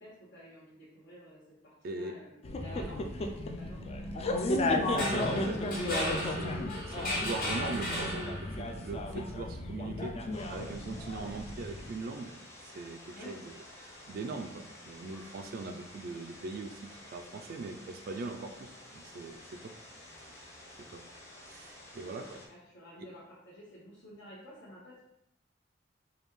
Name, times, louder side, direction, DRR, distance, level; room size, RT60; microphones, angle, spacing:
voice 1, 0.0-4.5 11.1-11.3 13.1-13.4 22.0-25.0, equal, 70° left, -9 dB, 1.2 m, -51 dB
voice 2, 1.8-2.2 4.9-10.2 10.5-12.3 12.6-13.5 13.8-19.7 20.2-20.4 20.9-21.0 21.5-22.4 23.0-23.1, right 3 dB, 50° right, 4 dB, 0.3 m, -41 dB
sound 1, 2.4-11.9, left 2 dB, 30° left, 0.3 m, -34 dB
sound 2, 4.8-8.7, left 1 dB, 50° left, 1.5 m, -36 dB
sound 3, 10.3-22.5, left 1 dB, 15° left, 0.8 m, -51 dB
5.2 x 2.3 x 3.1 m, 0.77 s
head